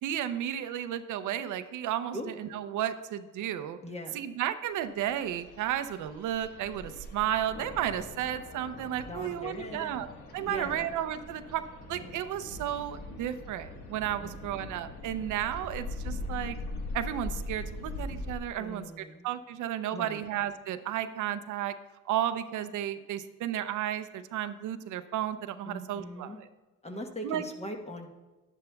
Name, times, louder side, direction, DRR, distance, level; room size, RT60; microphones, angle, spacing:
voice 1, 0.0-3.8 4.1-10.1 10.3-11.6 11.9-16.6 16.9-18.8 19.2-21.7 22.1-26.3 27.2-27.4, right 11 dB, 80° right, 11 dB, 0.6 m, -33 dB
voice 2, 3.8-4.3 9.0-10.0 10.4-10.9 14.2-14.7 18.6-19.3 19.9-20.3 25.6-26.4 26.8-28.1, equal, 20° left, 3 dB, 1.1 m, -41 dB
sound 1, 5.0-18.4, left 2 dB, 85° left, 1.4 m, -41 dB
11.0 x 10.5 x 2.3 m, 1.1 s
cardioid pair, 90°, 30 cm